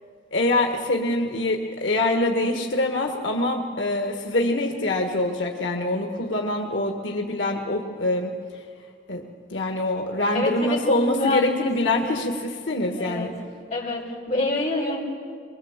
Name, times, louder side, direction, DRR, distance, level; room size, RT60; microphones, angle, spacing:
voice 1, 0.3-8.7 9.1-9.2 9.5-13.3, left 2 dB, 90° left, 2 dB, 1.5 m, -25 dB
voice 2, 10.3-11.7 12.0-12.1 13.0-13.3 13.7-15.0, left 2 dB, 40° left, -4 dB, 5.2 m, -26 dB
23.5 x 21.5 x 7.4 m, 2.2 s
head